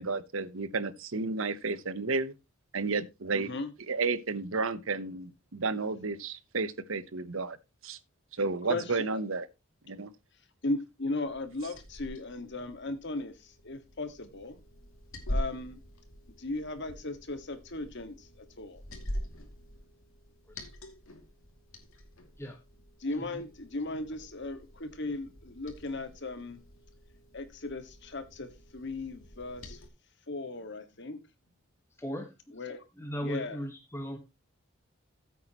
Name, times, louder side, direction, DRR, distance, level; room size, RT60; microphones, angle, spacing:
voice 1, 0.0-2.3 2.7-3.5 3.9-7.6 7.8-8.0 8.4-9.5 9.9-10.1, right 4 dB, 75° right, 1.0 m, -32 dB
voice 2, 3.3-3.7 8.7-9.2 10.6-14.6 15.3-15.8 16.4-18.8 23.0-26.6 27.3-29.8 30.3-31.2 32.5-32.8 33.2-33.6, left 2 dB, 60° left, 1.8 m, -37 dB
Liquid, 11.3-29.9, equal, 80° left, 2.6 m, -44 dB
voice 3, 32.0-32.3 33.0-34.2, equal, 15° left, 1.3 m, -37 dB
14.0 x 8.3 x 3.0 m
head